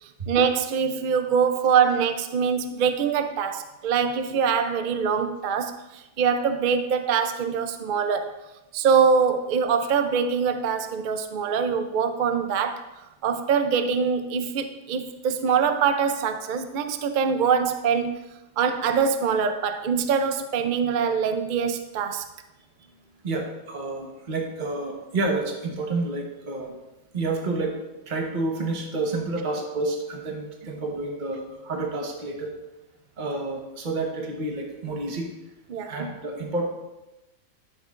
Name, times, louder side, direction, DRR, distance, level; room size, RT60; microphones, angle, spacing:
voice 1, 0.0-8.3 8.7-12.8 13.2-18.2 18.6-22.3 35.7-35.9, right 6 dB, 60° right, 8 dB, 0.5 m, -24 dB
voice 2, 23.2-26.7 27.1-27.7 28.1-32.5 33.2-35.3 35.9-36.6, right 2 dB, 40° right, 1 dB, 1.2 m, -29 dB
11.5 x 6.4 x 2.5 m, 0.99 s
omnidirectional pair, 1.4 m